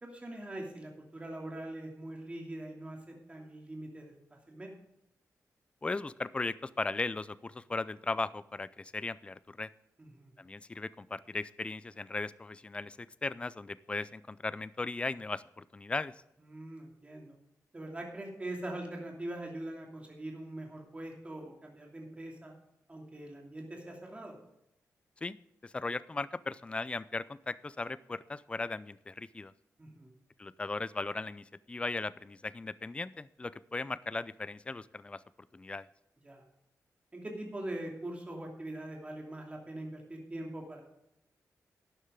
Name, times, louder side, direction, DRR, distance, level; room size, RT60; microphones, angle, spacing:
voice 1, 0.0-4.7 10.0-10.3 16.4-17.3 17.7-22.5 22.9-24.4 29.8-30.1 36.2-36.4 37.1-40.8, right 1 dB, 20° right, 0 dB, 2.7 m, -42 dB
voice 2, 5.8-9.7 10.4-16.1 25.2-25.4 25.6-29.5 30.4-35.2 35.5-35.9, left 3 dB, 20° left, 17 dB, 0.4 m, -37 dB
12.5 x 9.8 x 3.7 m, 0.81 s
wide cardioid pair, 130°, 6 cm